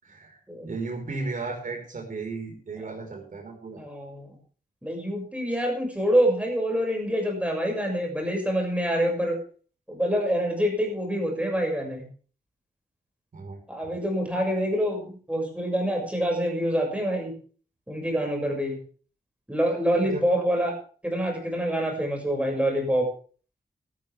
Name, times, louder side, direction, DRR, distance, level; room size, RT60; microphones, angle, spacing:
voice 1, 0.0-0.4 0.6-3.8 13.3-13.6 20.0-20.2, right 3 dB, 55° right, 2 dB, 5.0 m, -35 dB
voice 2, 3.8-4.3 4.8-9.4 9.9-12.1 13.7-17.3 17.9-18.8 19.5-20.8 21.0-23.1, equal, 10° right, 1 dB, 6.5 m, -26 dB
16.5 x 13.5 x 3.6 m, 0.42 s
wide cardioid pair, 85°, 16 cm